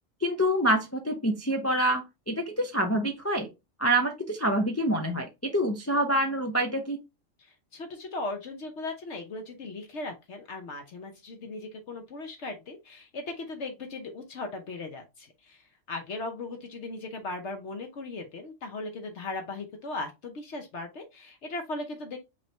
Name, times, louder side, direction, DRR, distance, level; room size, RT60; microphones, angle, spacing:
voice 1, 0.2-3.5 3.8-7.0, right 1 dB, 25° left, 0.3 m, -26 dB
voice 2, 7.4-22.2, left 2 dB, 65° left, 1.1 m, -38 dB
5.3 x 2.9 x 3.2 m
omnidirectional pair, 1.3 m